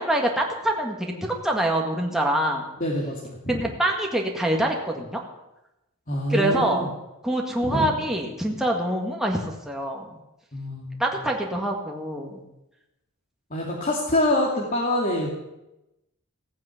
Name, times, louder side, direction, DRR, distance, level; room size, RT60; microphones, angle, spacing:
voice 1, 0.0-2.6 3.5-5.2 6.3-6.9 7.2-10.1 11.0-12.4, right 1 dB, ahead, 0 dB, 1.9 m, -25 dB
voice 2, 2.8-3.6 6.1-6.9 7.6-8.0 10.5-11.0 13.5-15.3, left 1 dB, 40° left, -3 dB, 2.5 m, -25 dB
16.0 x 9.5 x 8.5 m, 0.93 s
head